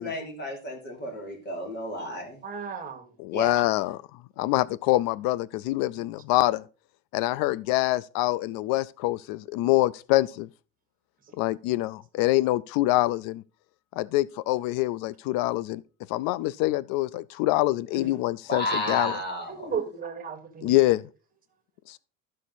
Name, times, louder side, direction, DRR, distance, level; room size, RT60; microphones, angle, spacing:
voice 1, 0.0-2.4 3.3-3.6 18.5-19.7, left 1 dB, 30° left, 3.2 m, -32 dB
voice 2, 2.4-3.1 18.0-18.1 19.5-20.8, right 6 dB, 25° right, 1.8 m, -34 dB
voice 3, 3.2-4.0 4.4-6.6 7.1-10.5 11.4-13.4 14.0-15.8 16.1-19.2 20.6-21.0 21.9-22.0, left 17 dB, 80° left, 0.5 m, -25 dB
12.5 x 6.5 x 4.1 m
cardioid pair, 150°, 34 cm